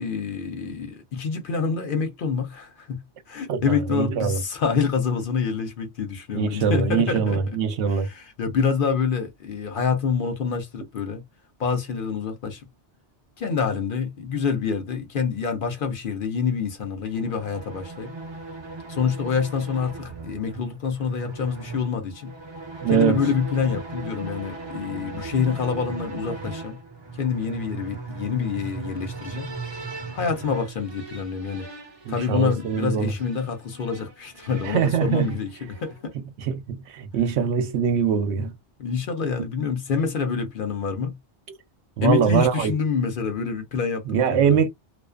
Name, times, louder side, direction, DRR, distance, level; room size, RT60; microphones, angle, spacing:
voice 1, 0.0-3.0 3.3-7.4 7.9-11.2 11.6-12.6 13.4-18.1 18.9-22.3 22.9-26.8 27.2-29.5 30.1-31.6 32.1-36.1 38.8-41.1 42.0-44.6, left 6 dB, 55° left, 0.7 m, -26 dB
voice 2, 3.5-4.4 6.3-8.1 22.8-23.2 32.1-33.1 34.6-35.3 36.4-38.5 42.0-42.7 44.1-44.7, right 7 dB, 80° right, 0.9 m, -23 dB
sound 1, 17.0-36.1, right 3 dB, 30° right, 0.5 m, -38 dB
2.5 x 2.3 x 2.3 m
omnidirectional pair, 1.2 m